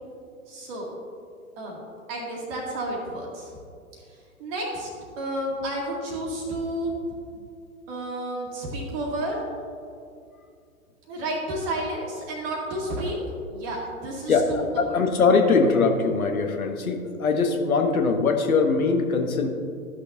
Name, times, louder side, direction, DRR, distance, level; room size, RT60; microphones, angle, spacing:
voice 1, 0.5-0.9 1.6-3.5 4.4-4.9 5.2-6.9 7.9-9.4 11.1-13.2 13.5-14.6 14.9-15.0, right 1 dB, 45° right, -2 dB, 1.7 m, -31 dB
voice 2, 14.3-19.5, left 4 dB, 80° left, 4 dB, 1.2 m, -22 dB
12.5 x 6.4 x 2.7 m, 2.3 s
figure-of-eight pair, 110°, 42 cm